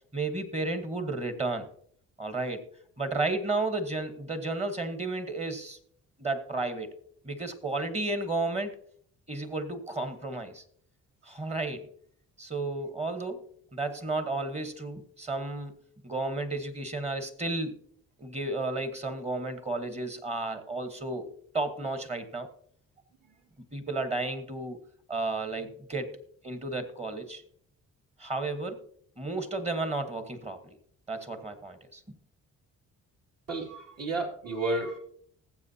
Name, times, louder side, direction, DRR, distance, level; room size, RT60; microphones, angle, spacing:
voice 1, 0.1-1.7 2.2-2.6 3.0-5.8 6.2-6.9 7.2-8.7 9.3-10.6 11.2-11.9 12.4-13.5 13.7-17.8 18.2-21.3 21.5-22.5 23.7-24.8 25.1-26.1 26.4-27.4 28.2-28.8 29.2-30.8 31.1-32.0, right 2 dB, 20° right, 9 dB, 1.3 m, -32 dB
voice 2, 33.5-35.0, right 2 dB, 55° right, -1 dB, 2.5 m, -31 dB
19.0 x 7.7 x 2.8 m, 0.62 s
cardioid pair, 90°, 30 cm